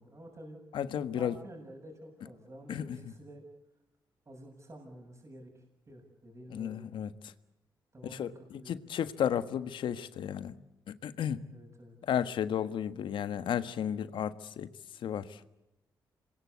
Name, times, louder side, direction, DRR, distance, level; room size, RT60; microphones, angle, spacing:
voice 1, 0.0-0.6 1.1-3.4 4.3-6.9 7.9-8.8 11.5-12.0, right 1 dB, 35° right, 1 dB, 7.6 m, -50 dB
voice 2, 0.7-1.4 2.7-3.0 6.5-7.1 8.0-10.5 10.9-11.4 12.0-14.7 15.0-15.4, left 9 dB, 75° left, 13 dB, 1.5 m, -33 dB
27.0 x 21.5 x 8.3 m, 0.97 s
supercardioid pair, 55°, 8 cm